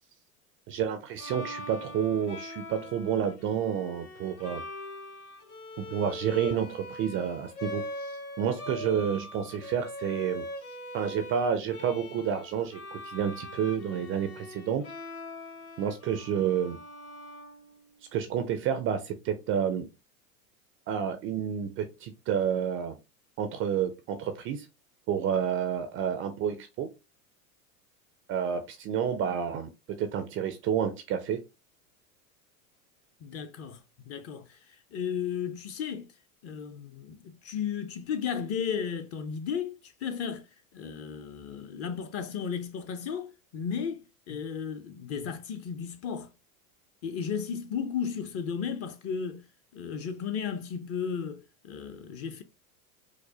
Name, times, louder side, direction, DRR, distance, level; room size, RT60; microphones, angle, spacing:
voice 1, 0.7-4.6 5.8-10.4 10.9-14.8 15.8-16.8 18.1-19.9 20.9-23.0 23.4-24.7 25.1-26.9 28.3-29.7 30.0-31.4, right 8 dB, 30° right, 0.4 m, -30 dB
Bowed string instrument, 1.2-18.1, left 1 dB, 85° left, 2.0 m, -42 dB
voice 2, 33.2-33.8 34.0-34.6 34.9-36.1 36.4-46.3 47.0-49.5 49.7-52.4, left 7 dB, 35° left, 0.6 m, -34 dB
4.8 x 2.0 x 2.7 m
hypercardioid pair, 100°, 45 cm